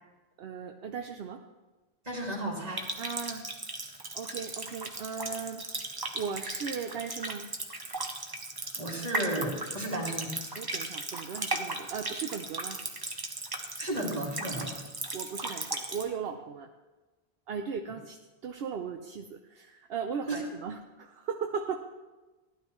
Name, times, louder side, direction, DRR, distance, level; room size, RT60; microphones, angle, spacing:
voice 1, 0.4-1.4 3.0-3.5 4.1-5.6 6.1-7.5 10.5-12.8 14.7-14.8 15.1-16.7 17.5-21.9, right 6 dB, 75° right, 4 dB, 0.9 m, -37 dB
voice 2, 2.0-2.9 8.8-10.3 13.8-14.8 20.3-20.4, right 1 dB, 40° right, -3 dB, 2.6 m, -33 dB
Water tap faucet, 2.7-16.1, right 2 dB, 25° right, 0.9 m, -37 dB
15.5 x 11.5 x 3.1 m, 1.2 s
omnidirectional pair, 1.0 m